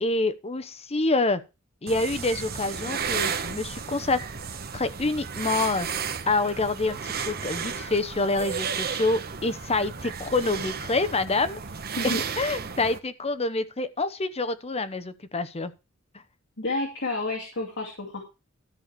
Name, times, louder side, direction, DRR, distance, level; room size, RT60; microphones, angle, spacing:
voice 1, 0.0-1.4 1.8-4.2 4.7-5.9 6.3-11.6 12.0-15.7, left 3 dB, 30° left, 0.9 m, -27 dB
sound 1, 1.9-13.0, right 6 dB, 50° right, 1.1 m, -33 dB
voice 2, 16.6-18.2, left 2 dB, 60° left, 2.4 m, -30 dB
13.0 x 4.7 x 6.8 m
head